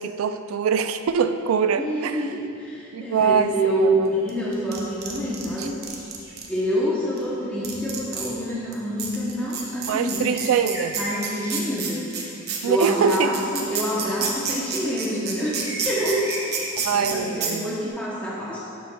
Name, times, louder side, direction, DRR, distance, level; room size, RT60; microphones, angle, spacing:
voice 1, 0.0-2.2 2.9-4.1 5.6-5.7 9.9-11.0 12.6-13.3 16.8-17.8, right 6 dB, 80° right, 11 dB, 0.3 m, -23 dB
voice 2, 1.8-5.7 6.5-10.3 10.9-12.3 12.6-16.6 16.9-18.6, equal, 5° left, -8 dB, 0.7 m, -26 dB
sound 1, 4.3-6.5 7.2-7.3 7.6-8.3 8.7-8.8 9.0-17.1 17.4-17.5, right 7 dB, 50° right, 0.7 m, -29 dB
sound 2, 5.8-6.3 6.7-7.1 7.6-7.7 8.3-8.7 9.6-12.9 13.9-14.2 15.1-16.7, right 1 dB, 15° right, 1.3 m, -38 dB
6.8 x 6.2 x 2.2 m, 2.6 s
head